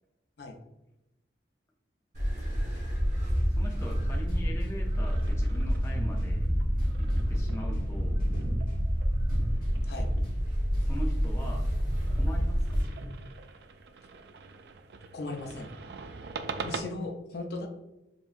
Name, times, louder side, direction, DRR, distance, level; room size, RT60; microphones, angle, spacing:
sound 1, 2.1-12.8, equal, 40° right, 1.2 m, -28 dB
sound 2, 2.7-3.9 4.3-4.9 5.2-6.4 6.8-7.3 7.7-8.9 9.3-10.5 10.7-13.2, equal, 50° left, 1.3 m, -48 dB
voice 1, 3.5-6.5 7.0-8.2 10.8-11.7 12.1-12.8, equal, 15° left, -1 dB, 0.5 m, -42 dB
sound 3, 4.8-16.8, right 4 dB, 70° right, 0.3 m, -45 dB
voice 2, 15.1-15.7 16.6-17.7, left 2 dB, 65° left, 3 dB, 0.6 m, -37 dB
4.4 x 2.8 x 2.5 m, 0.93 s
head